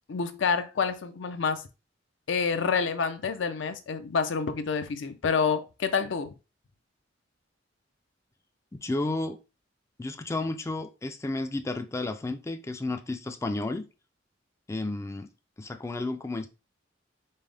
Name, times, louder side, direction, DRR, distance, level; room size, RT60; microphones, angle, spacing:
voice 1, 0.1-1.6 2.3-6.3, left 5 dB, 75° left, 0.5 m, -28 dB
voice 2, 8.7-9.4 10.0-13.9 14.7-15.3 15.6-16.5, left 2 dB, 15° left, 0.3 m, -32 dB
5.4 x 2.1 x 3.3 m
head